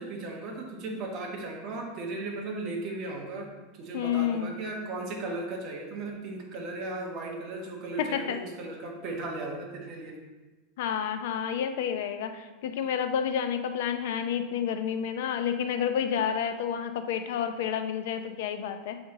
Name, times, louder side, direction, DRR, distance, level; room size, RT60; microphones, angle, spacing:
voice 1, 0.0-3.5 3.8-10.2, right 2 dB, 35° right, 0 dB, 1.3 m, -36 dB
voice 2, 3.9-4.5 8.0-8.4 10.8-19.0, left 8 dB, 70° left, 8 dB, 0.6 m, -30 dB
6.7 x 4.3 x 3.8 m, 1.2 s
supercardioid pair, 160°, 0 cm